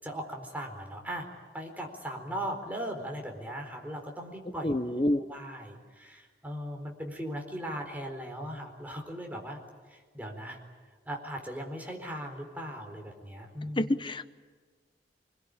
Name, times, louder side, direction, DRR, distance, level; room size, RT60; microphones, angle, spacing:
voice 1, 0.0-1.3 1.5-9.6 9.9-10.6 11.1-13.9, equal, 10° right, 2 dB, 4.2 m, -38 dB
voice 2, 4.6-5.2 13.8-14.3, left 1 dB, 30° left, 11 dB, 1.0 m, -27 dB
25.5 x 21.0 x 10.0 m, 1.5 s
head